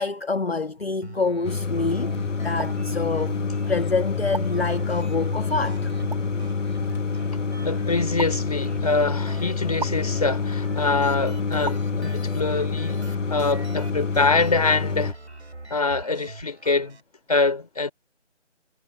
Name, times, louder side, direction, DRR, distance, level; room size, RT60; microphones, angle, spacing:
voice 1, 0.0-3.4 3.7-5.9, left 3 dB, 55° left, 1.4 m, -27 dB
sound 1, 1.0-17.0, right 2 dB, 65° right, 6.7 m, -42 dB
sound 2, 1.4-15.1, left 4 dB, 85° left, 1.0 m, -27 dB
sound 3, 2.6-2.7 4.3-4.5 6.1-6.2 8.2-8.3 9.8-9.9 11.6-11.8, right 3 dB, 45° right, 5.3 m, -31 dB
voice 2, 7.6-13.0 13.3-15.1 15.7-17.0 17.3-17.9, left 3 dB, 30° left, 4.2 m, -24 dB
figure-of-eight pair, 175°, 36 cm